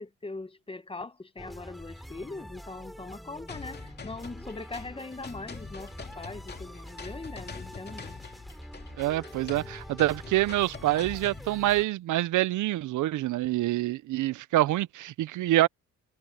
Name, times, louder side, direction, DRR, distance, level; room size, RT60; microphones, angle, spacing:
voice 1, 0.0-8.2, left 3 dB, 20° left, 1.2 m, -41 dB
sound 1, 1.4-11.8, equal, ahead, 3.2 m, -46 dB
sound 2, 3.5-11.5, left 5 dB, 35° left, 2.7 m, -44 dB
voice 2, 9.0-15.7, right 15 dB, 75° right, 0.7 m, -26 dB
cardioid pair, 90°, 30 cm